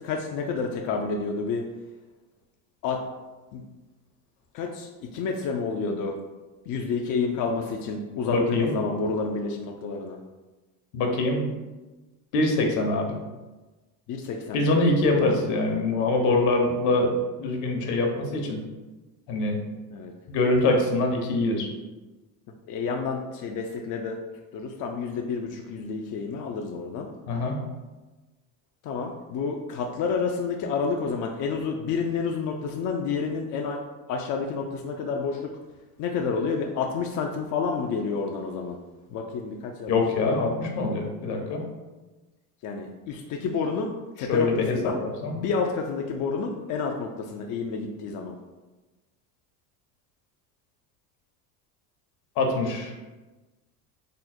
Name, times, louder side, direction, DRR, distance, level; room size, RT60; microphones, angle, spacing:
voice 1, 0.0-1.6 2.8-3.0 3.5-3.6 4.5-6.2 6.7-10.2 14.1-14.6 19.9-20.1 22.7-24.2 24.5-27.1 28.8-33.8 34.1-35.4 36.0-38.8 39.1-39.9 40.2-40.4 42.6-43.9 44.2-45.0 45.3-48.4, left 5 dB, 45° left, 1 dB, 0.5 m, -29 dB
voice 2, 8.3-8.7 10.9-11.5 12.3-13.2 14.5-18.6 19.3-19.6 20.3-21.7 27.3-27.6 39.9-41.7 44.2-44.9 45.2-45.4 52.4-52.9, left 2 dB, 65° left, 2 dB, 1.0 m, -24 dB
3.8 x 2.0 x 4.2 m, 1.2 s
hypercardioid pair, 75°, 46 cm